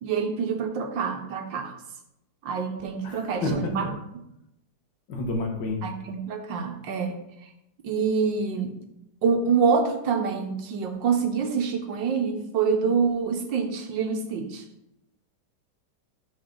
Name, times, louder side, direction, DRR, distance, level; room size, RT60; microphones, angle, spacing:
voice 1, 0.0-1.7 2.4-3.9 5.8-7.1 7.8-8.7 9.2-14.6, right 5 dB, 90° right, 4 dB, 1.8 m, -26 dB
voice 2, 3.0-3.9 5.1-5.9, left 2 dB, 75° left, 2 dB, 2.0 m, -30 dB
12.5 x 4.9 x 3.9 m, 0.84 s
omnidirectional pair, 1.9 m